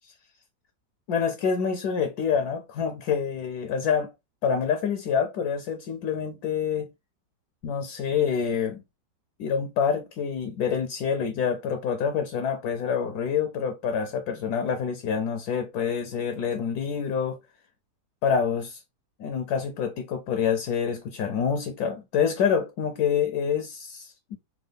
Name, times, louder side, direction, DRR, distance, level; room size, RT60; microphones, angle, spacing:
voice 1, 1.1-4.1 4.4-6.9 7.6-8.8 9.4-17.4 18.2-18.8 19.2-24.4, left 7 dB, 70° left, 1.0 m, -27 dB
3.6 x 2.2 x 3.3 m
omnidirectional pair, 1.9 m